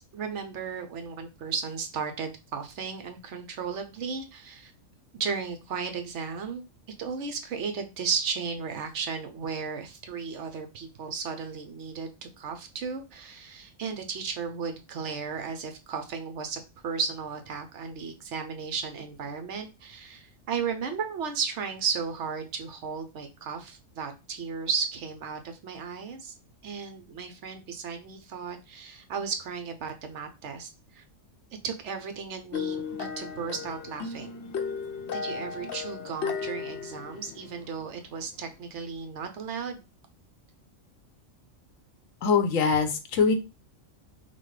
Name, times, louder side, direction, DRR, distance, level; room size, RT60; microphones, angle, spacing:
voice 1, 0.0-4.7 5.1-6.6 7.0-26.3 26.6-31.0 31.6-34.4 35.1-39.8, right 5 dB, 65° right, 6 dB, 1.0 m, -35 dB
sound 1, 32.5-38.0, left 6 dB, 65° left, 0.8 m, -35 dB
voice 2, 42.2-43.3, left 5 dB, 85° left, 7 dB, 1.1 m, -23 dB
5.6 x 2.1 x 3.2 m, 0.27 s
omnidirectional pair, 1.3 m